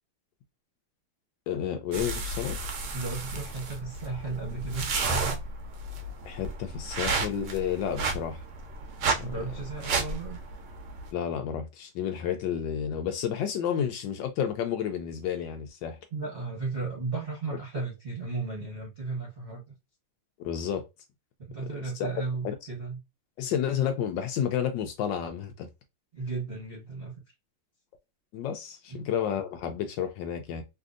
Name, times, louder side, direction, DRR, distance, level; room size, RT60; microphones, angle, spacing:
voice 1, 1.5-2.6 6.2-8.4 9.1-9.2 11.1-16.0 20.4-20.8 22.4-22.5 23.4-25.7 28.3-30.6, left 9 dB, 75° left, 1.1 m, -31 dB
sound 1, 1.9-11.1, right 3 dB, 70° right, 1.1 m, -32 dB
voice 2, 2.9-5.4 9.2-10.4 16.1-19.8 21.5-23.0 26.1-27.2 28.9-29.1, right 4 dB, 40° right, 0.9 m, -35 dB
3.3 x 2.6 x 2.4 m
omnidirectional pair, 2.3 m